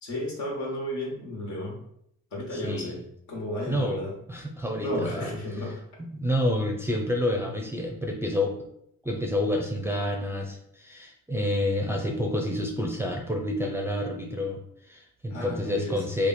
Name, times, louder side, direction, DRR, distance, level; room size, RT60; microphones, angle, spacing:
voice 1, 0.0-1.8 2.3-3.0 3.3-4.1 4.8-5.8 15.3-16.1, left 1 dB, 70° left, -2 dB, 1.5 m, -33 dB
voice 2, 2.5-3.0 3.7-5.3 6.0-8.5 9.0-16.3, left 1 dB, 10° right, 2 dB, 0.5 m, -29 dB
3.0 x 2.4 x 4.2 m, 0.72 s
cardioid pair, 90°, 30 cm